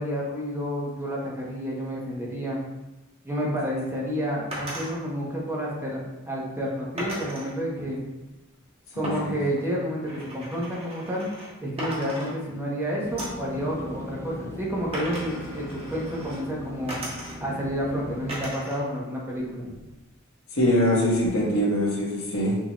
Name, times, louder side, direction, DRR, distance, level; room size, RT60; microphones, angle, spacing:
voice 1, 0.0-2.6 3.2-8.0 8.9-11.3 11.6-16.9 17.4-19.7, equal, 10° right, -4 dB, 0.9 m, -30 dB
sound 1, 4.5-4.9 7.0-7.5 9.0-11.5 11.8-12.7 13.2-13.5 14.9-16.4 16.9-17.6 18.3-18.8 19.2-20.0, equal, 30° right, 1.2 m, -37 dB
voice 2, 8.9-9.4 20.5-22.6, equal, 70° left, -4 dB, 1.3 m, -23 dB
sound 2, 13.0-18.4, equal, 15° left, 0.3 m, -40 dB
6.1 x 2.8 x 3.0 m, 1.0 s
head